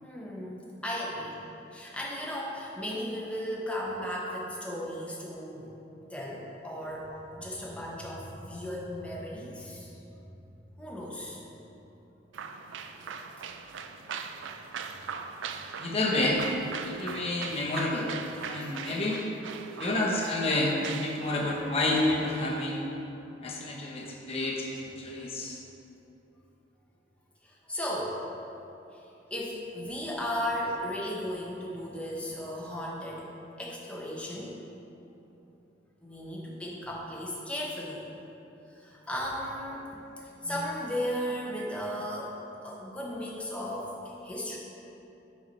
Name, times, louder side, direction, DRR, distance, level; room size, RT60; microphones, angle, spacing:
voice 1, 0.0-1.4 1.7-5.7 6.1-9.9 10.8-11.4 13.2-13.5 24.0-24.1 27.4-28.2 28.9-29.0 29.3-33.3 33.6-34.5 36.0-38.0 38.7-39.9 40.2-42.4 42.6-44.6, equal, 5° left, -4 dB, 0.9 m, -35 dB
sound 1, 12.3-22.6, right 6 dB, 85° right, 0.4 m, -41 dB
voice 2, 15.8-16.4 16.9-18.1 18.4-19.2 19.8-20.7 21.0-22.8 23.4-25.6, left 2 dB, 30° left, -2 dB, 0.9 m, -29 dB
5.8 x 4.4 x 5.2 m, 3.0 s
head